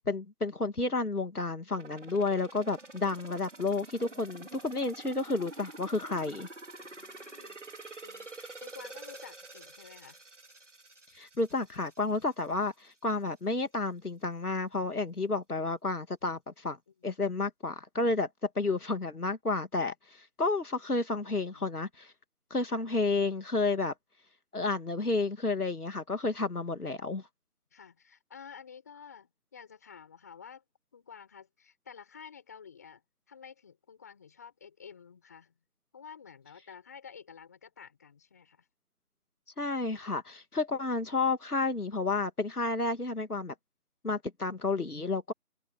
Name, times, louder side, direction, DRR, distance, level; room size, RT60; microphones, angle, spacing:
voice 1, 0.0-6.5 11.1-16.8 17.0-22.1 22.5-23.9 24.5-27.2 39.6-43.5 44.0-45.3, left 3 dB, 85° left, 2.5 m, -31 dB
sound 1, 1.7-12.5 12.8-12.9, right 2 dB, 50° right, 3.2 m, -48 dB
voice 2, 6.9-7.6 8.0-10.2 17.0-17.1 18.6-19.2 21.1-21.8 22.7-22.9 27.7-30.6 30.9-35.6 35.9-38.7, left 7 dB, 10° left, 6.4 m, -51 dB
figure-of-eight pair, 175°, 44 cm